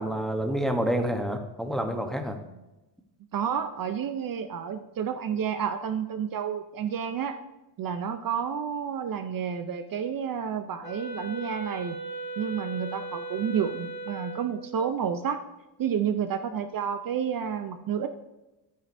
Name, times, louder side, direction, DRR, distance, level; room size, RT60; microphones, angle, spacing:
voice 1, 0.0-2.4, equal, ahead, 5 dB, 0.9 m, -28 dB
voice 2, 3.3-7.4 7.8-12.0 12.4-15.4 15.8-18.1, right 7 dB, 50° right, 9 dB, 0.6 m, -30 dB
Wind instrument woodwind instrument, 10.8-14.7, right 1 dB, 20° left, 2.5 m, -38 dB
10.5 x 9.5 x 2.7 m, 1.0 s
cardioid pair, 100°, 45 cm